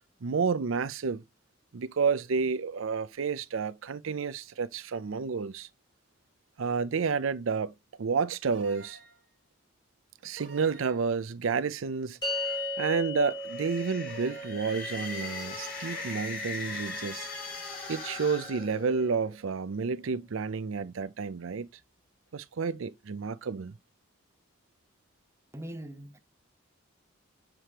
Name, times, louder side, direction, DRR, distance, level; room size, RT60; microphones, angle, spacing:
voice 1, 0.2-1.2 1.7-5.7 6.6-7.7 8.0-9.0 10.2-12.2 12.8-17.3 17.9-21.7 22.3-23.7, right 5 dB, 85° right, 0.5 m, -30 dB
sound 1, 8.5-9.3 10.4-11.1 12.2-13.0 14.1-14.8 15.9-16.5, right 3 dB, 65° right, 1.7 m, -50 dB
sound 2, 12.2-18.8, left 1 dB, 20° left, 2.5 m, -39 dB
sound 3, 13.3-19.3, left 3 dB, 45° left, 3.9 m, -39 dB
voice 2, 25.5-26.2, right 1 dB, 15° right, 0.8 m, -41 dB
7.5 x 4.9 x 2.9 m
head